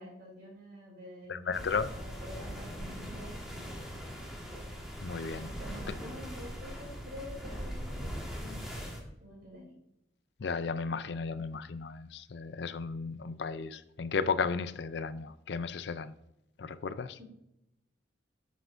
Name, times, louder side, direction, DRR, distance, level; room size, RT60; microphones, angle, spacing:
voice 1, 0.0-3.6 5.1-9.7 17.2-17.3, equal, 50° right, -4 dB, 3.1 m, -48 dB
voice 2, 1.3-1.9 5.0-5.5 5.9-6.0 10.4-16.1 16.6-17.2, left 5 dB, 65° left, 14 dB, 0.5 m, -34 dB
sound 1, 1.5-9.0, equal, ahead, 1.5 m, -41 dB
9.6 x 7.2 x 2.6 m, 0.84 s
head